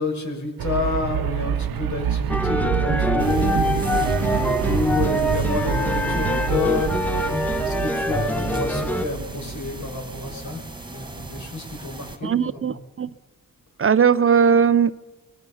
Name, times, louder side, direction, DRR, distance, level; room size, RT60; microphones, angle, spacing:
voice 1, 0.0-3.9 4.2-7.1 7.6-10.6 10.9-12.8, left 3 dB, 55° left, 6.4 m, -29 dB
sound 1, 0.6-10.5, right 9 dB, 85° right, 1.0 m, -27 dB
sound 2, 2.3-9.1, left 1 dB, 5° left, 1.2 m, -24 dB
sound 3, 3.2-12.2, right 2 dB, 15° right, 2.1 m, -39 dB
voice 2, 12.2-13.1 13.8-14.9, right 7 dB, 40° right, 0.6 m, -18 dB
24.5 x 22.0 x 5.7 m
wide cardioid pair, 120°, 35 cm